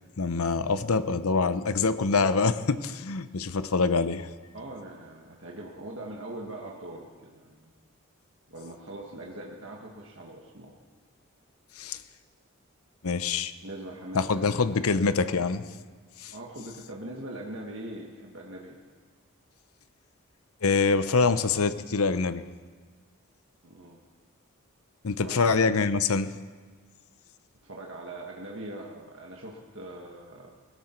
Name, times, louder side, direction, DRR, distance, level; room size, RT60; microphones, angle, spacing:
voice 1, 0.2-4.3 11.8-12.0 13.0-13.5 14.1-15.6 16.2-16.3 20.6-22.4 25.0-26.3, left 4 dB, 75° left, 12 dB, 0.7 m, -25 dB
voice 2, 4.5-7.7 8.5-10.7 13.3-14.3 14.7-14.9 16.3-18.8 23.6-24.0 25.2-25.5 27.6-30.5, right 1 dB, 60° right, -1 dB, 1.6 m, -42 dB
19.0 x 16.5 x 4.5 m, 1.5 s
head